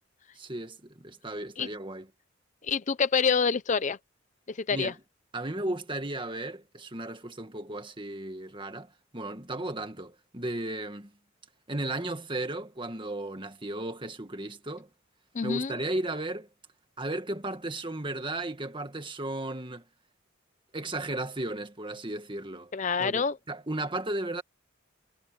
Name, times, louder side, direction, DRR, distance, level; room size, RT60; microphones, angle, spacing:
voice 1, 0.4-2.1 4.7-4.9 5.3-11.1 11.7-14.9 15.4-16.5 17.0-19.8 20.7-22.7 23.0-24.4, right 2 dB, 25° right, 1.9 m, -35 dB
voice 2, 2.6-4.0 4.5-4.9 15.3-15.7 22.7-23.4, left 5 dB, 35° left, 0.5 m, -27 dB
head